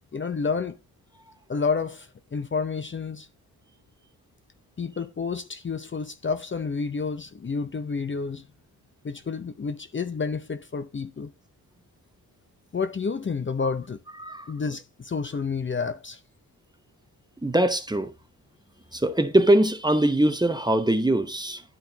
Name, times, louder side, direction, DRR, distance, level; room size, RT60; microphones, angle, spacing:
voice 1, 0.1-0.8 1.5-3.3 4.8-8.5 9.0-11.3 12.7-14.0 14.5-16.2, left 5 dB, 30° left, 0.7 m, -30 dB
voice 2, 14.2-14.5 17.4-18.1 18.9-21.6, right 1 dB, 10° right, 0.9 m, -22 dB
11.0 x 4.4 x 3.9 m
cardioid pair, 105°, 37 cm